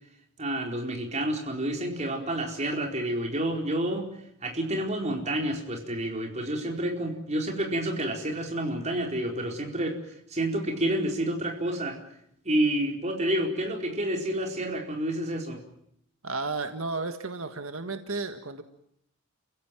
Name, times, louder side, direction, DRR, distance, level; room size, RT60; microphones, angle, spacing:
voice 1, 0.4-4.1 4.4-10.0 10.3-12.0 12.4-15.6, right 1 dB, 35° right, 2 dB, 4.6 m, -29 dB
voice 2, 16.2-18.6, right 3 dB, 90° right, 7 dB, 1.7 m, -33 dB
30.0 x 16.0 x 9.2 m, 0.73 s
head